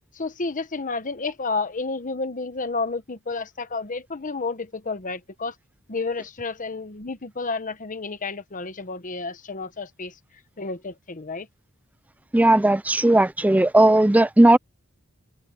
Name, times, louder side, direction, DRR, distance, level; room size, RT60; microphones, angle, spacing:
voice 1, 0.2-5.5 5.9-10.1 10.6-11.5, left 3 dB, 40° left, 1.1 m, -31 dB
voice 2, 12.3-14.6, right 1 dB, 5° right, 0.4 m, -16 dB
head